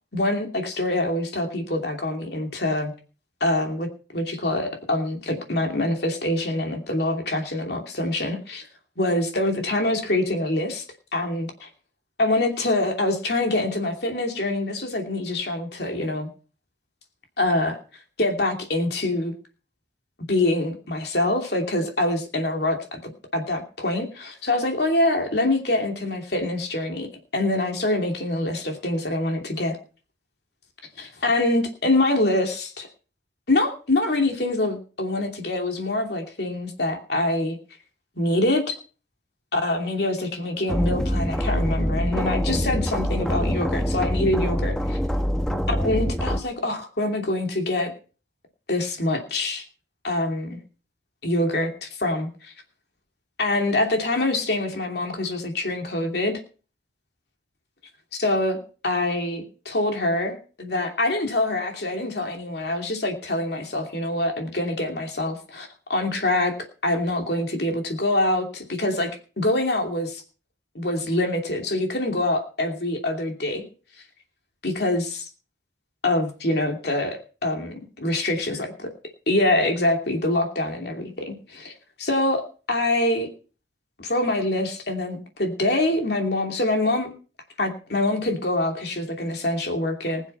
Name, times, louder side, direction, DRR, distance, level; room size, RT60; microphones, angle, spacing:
voice 1, 0.1-2.9 3.4-8.7 9.0-10.8 11.1-11.7 12.2-16.3 17.4-17.8 18.2-19.3 20.3-29.8 31.0-32.9 33.5-37.6 38.2-38.8 39.5-45.0 45.7-47.9 48.7-49.6 50.0-50.6 51.2-52.5 53.4-56.4 58.2-66.5 66.8-70.2 70.7-73.6 74.6-75.3 76.0-78.7 79.3-81.7 82.0-83.3 84.0-87.1 87.6-90.2, left 2 dB, 60° left, 3 dB, 2.8 m, -25 dB
sound 1, 40.7-46.4, equal, 5° left, 0.9 m, -25 dB
20.5 x 7.3 x 5.6 m, 0.38 s
head